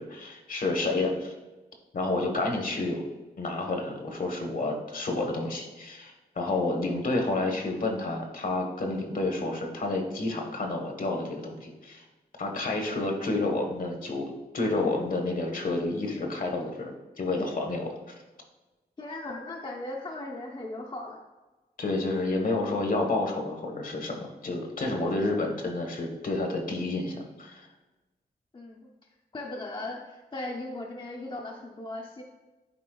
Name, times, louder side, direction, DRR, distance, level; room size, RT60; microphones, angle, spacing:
voice 1, 0.0-1.3 1.9-3.0 3.4-12.0 12.4-18.1 21.8-27.7, left 2 dB, 55° left, 2 dB, 1.1 m, -30 dB
voice 2, 19.0-21.2 28.5-28.9 29.3-32.2, left 2 dB, 30° left, 0 dB, 0.6 m, -37 dB
10.0 x 4.2 x 2.3 m, 1.2 s
cardioid pair, 80°, 17 cm